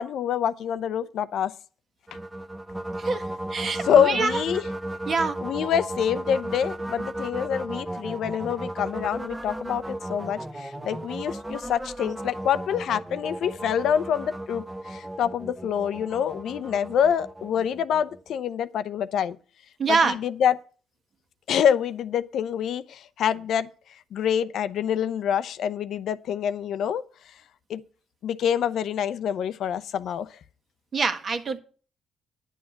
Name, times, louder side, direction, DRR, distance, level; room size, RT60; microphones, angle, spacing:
voice 1, 0.0-1.5 3.8-4.7 5.4-19.4 19.9-20.6 21.5-23.7 24.1-27.0 27.7-27.8 28.2-30.3, left 8 dB, 70° left, 0.6 m, -26 dB
sound 1, 2.1-18.3, right 1 dB, 10° right, 0.8 m, -35 dB
voice 2, 3.5-4.3 5.1-5.4 19.8-20.1 30.9-31.6, right 4 dB, 50° right, 1.5 m, -24 dB
10.0 x 7.4 x 5.7 m
cardioid pair, 90°, 0 cm